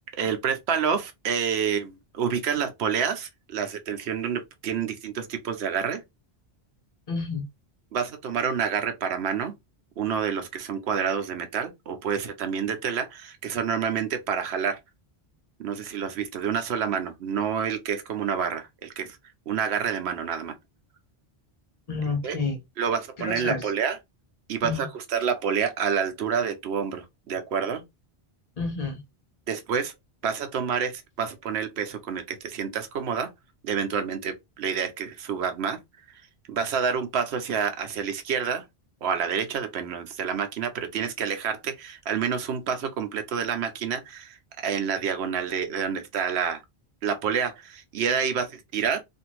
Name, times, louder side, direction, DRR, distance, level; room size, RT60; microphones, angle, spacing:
voice 1, 0.1-6.0 7.9-9.5 10.0-14.8 15.6-19.2 19.5-20.5 22.2-22.4 22.8-24.0 24.5-27.8 29.5-29.9 30.2-33.3 33.6-35.8 36.5-38.6 39.0-46.6 47.0-49.0, right 7 dB, 80° right, 0.9 m, -28 dB
voice 2, 7.1-7.4 21.9-22.6 23.2-23.6 24.6-24.8 28.6-29.0, left 4 dB, 45° left, 0.7 m, -29 dB
2.6 x 2.5 x 3.0 m
omnidirectional pair, 1.1 m